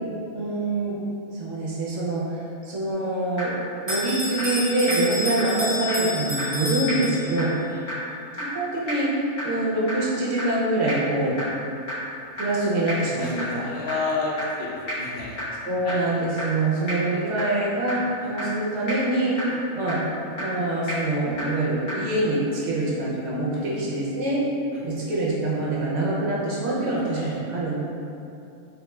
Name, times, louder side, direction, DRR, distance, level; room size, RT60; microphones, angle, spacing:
voice 1, 0.3-1.0 1.3-3.5 3.8-7.5 8.4-9.1 9.4-11.4 12.4-13.6 15.7-19.4 19.7-20.0 20.3-24.5 24.8-27.8, right 2 dB, 65° right, -6 dB, 0.9 m, -25 dB
sound 1, 2.9-3.0 3.4-3.5 3.9-4.0 4.4-4.5 4.9-5.0 5.4-5.5 5.9-6.0 6.4-6.5 6.9-7.0 7.4-7.5 7.9-8.0 8.4-8.5 8.9-9.0 9.4-9.5 9.9-10.0 10.4-10.5 10.9-11.0 11.4-11.5 11.9-12.0 12.4-12.5 12.9-13.0 13.4-13.5 13.9-14.0 14.4-14.5 14.9-15.0 15.4-15.5 15.9-16.0 16.4-16.5 16.9-17.0 17.4-17.5 17.9-18.0 18.4-18.5 18.9-19.0 19.4-19.5 19.9-20.0 20.4-20.5 20.9-21.0 21.4-21.5 21.9-22.0, equal, 80° left, 1.6 m, -30 dB
Bell, 3.9-7.6, left 1 dB, 30° right, 0.5 m, -30 dB
voice 2, 13.2-15.4 15.8-16.0 17.9-18.4 19.4-19.6 23.5-23.7 24.7-24.8 26.8-27.4, left 3 dB, 60° left, -5 dB, 0.6 m, -32 dB
3.6 x 2.3 x 3.0 m, 2.7 s
omnidirectional pair, 1.5 m